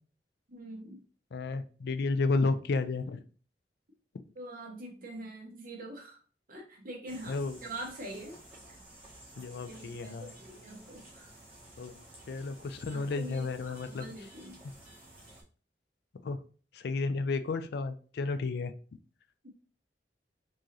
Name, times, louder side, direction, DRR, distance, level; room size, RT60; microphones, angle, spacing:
voice 1, 0.5-1.0 4.3-6.2 6.5-8.4 9.6-11.3 12.9-14.6 19.4-19.5, right 1 dB, 55° right, -1 dB, 1.4 m, -44 dB
voice 2, 1.3-3.2 7.3-7.6 9.4-10.3 11.8-12.0 12.3-14.1 16.2-16.4 16.7-18.7, left 3 dB, 65° left, 10 dB, 0.4 m, -32 dB
sound 1, 7.1-15.4, right 1 dB, 10° right, 1.5 m, -53 dB
4.5 x 2.9 x 3.0 m, 0.39 s
head